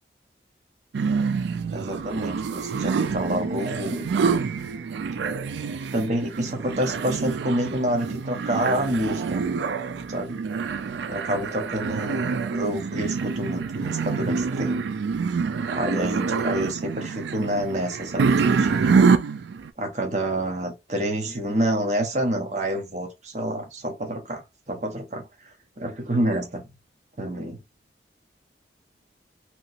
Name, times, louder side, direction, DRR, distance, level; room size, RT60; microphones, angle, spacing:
sound 1, 0.9-19.7, right 5 dB, 75° right, 0.3 m, -26 dB
voice 1, 1.7-4.1 5.9-9.4 10.1-10.4 11.1-14.9 15.7-18.9 19.8-25.3 25.8-26.6 27.2-27.6, right 1 dB, 40° right, 0.9 m, -28 dB
3.0 x 2.8 x 2.6 m
head